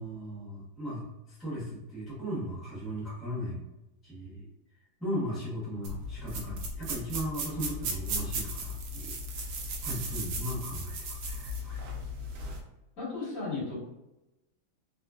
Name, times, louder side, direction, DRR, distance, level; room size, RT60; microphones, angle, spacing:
voice 1, 0.0-3.6 4.0-4.5 5.0-9.2 9.8-11.8, equal, ahead, -8 dB, 0.3 m, -37 dB
sound 1, 5.8-12.6, right 1 dB, 75° right, 1.4 m, -36 dB
voice 2, 13.0-13.7, left 3 dB, 40° left, -9 dB, 1.9 m, -34 dB
4.1 x 2.4 x 2.2 m, 0.96 s
omnidirectional pair, 2.4 m